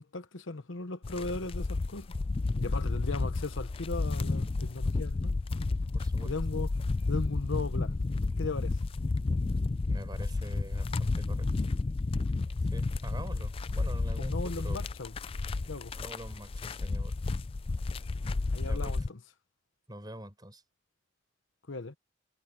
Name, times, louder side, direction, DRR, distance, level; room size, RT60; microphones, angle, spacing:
voice 1, 0.0-2.1 2.6-5.4 6.2-6.7 7.1-8.0 8.4-8.8 13.2-13.3 14.2-15.2 15.6-15.9 18.5-19.2 21.7-22.0, left 3 dB, 85° left, 1.1 m, -37 dB
sound 1, 1.0-19.1, left 3 dB, 30° left, 0.4 m, -31 dB
sound 2, 2.7-12.2, equal, 50° left, 6.2 m, -55 dB
voice 2, 5.9-6.3 9.8-11.5 12.7-14.9 15.9-17.2 18.6-18.9 19.9-20.6, right 1 dB, 20° right, 5.3 m, -45 dB
head